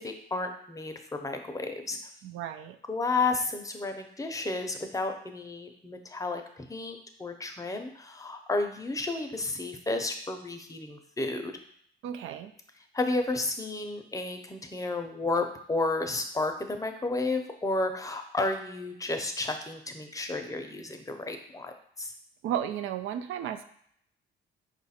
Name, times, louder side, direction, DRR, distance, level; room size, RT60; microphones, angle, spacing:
voice 1, 0.0-2.0 2.9-11.5 12.9-22.1, left 3 dB, 15° left, 5 dB, 0.6 m, -32 dB
voice 2, 2.2-2.8 12.0-12.5 22.4-23.6, right 10 dB, 80° right, 9 dB, 0.4 m, -33 dB
4.8 x 2.4 x 4.2 m, 0.66 s
cardioid pair, 90°, 20 cm